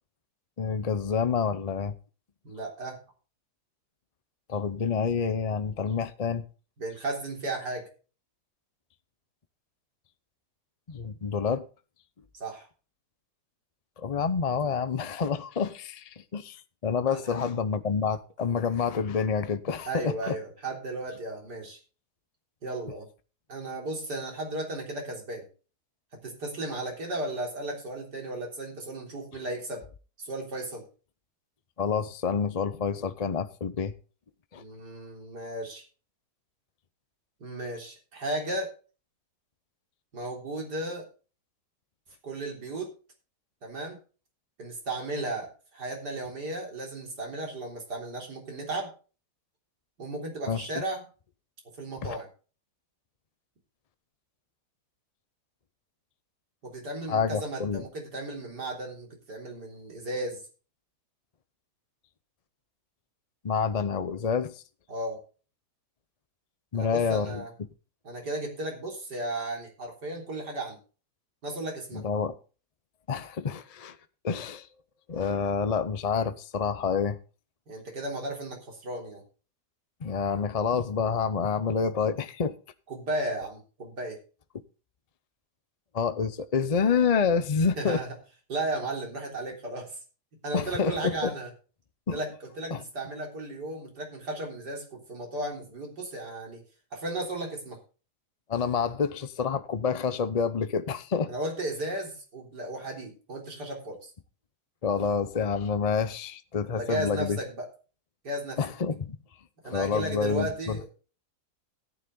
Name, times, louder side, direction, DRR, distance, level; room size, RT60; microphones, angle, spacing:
voice 1, 0.6-1.9 4.5-6.4 10.9-11.7 14.0-20.4 31.8-33.9 34.5-34.6 50.5-50.7 52.0-52.2 57.1-57.8 63.4-64.6 66.7-67.4 71.9-72.4 73.1-74.0 74.2-74.7 75.1-77.2 80.0-82.6 85.9-88.0 90.5-91.3 92.1-92.2 92.7-92.8 98.5-101.3 104.8-107.4 108.6-109.1 109.6-110.8, left 6 dB, 45° left, 0.5 m, -28 dB
voice 2, 2.4-3.0 6.8-7.9 12.3-12.7 17.1-17.3 19.9-21.8 22.6-23.1 23.5-25.5 26.2-29.8 30.2-30.9 34.6-35.8 37.4-38.7 40.1-41.1 42.2-42.9 43.6-44.0 44.6-48.9 50.0-51.0 51.8-52.3 56.6-60.4 64.9-65.2 66.7-67.5 68.0-70.8 71.4-72.0 77.7-79.2 82.9-84.2 87.8-88.2 88.5-90.0 90.4-91.5 92.1-96.6 96.9-97.8 101.3-104.1 106.7-107.7 108.2-108.6 109.6-110.9, right 2 dB, 90° right, 4.2 m, -35 dB
14.0 x 9.7 x 3.8 m
omnidirectional pair, 1.7 m